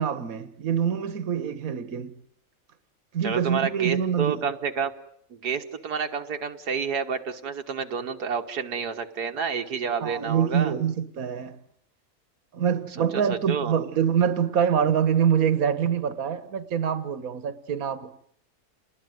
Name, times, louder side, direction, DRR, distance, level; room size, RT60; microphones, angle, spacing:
voice 1, 0.0-2.1 3.1-4.4 10.0-11.6 12.5-18.2, right 8 dB, 65° right, 1.8 m, -25 dB
voice 2, 3.2-4.9 5.3-10.7 13.1-13.7, right 6 dB, 85° right, 2.0 m, -29 dB
29.5 x 20.5 x 9.3 m
omnidirectional pair, 1.7 m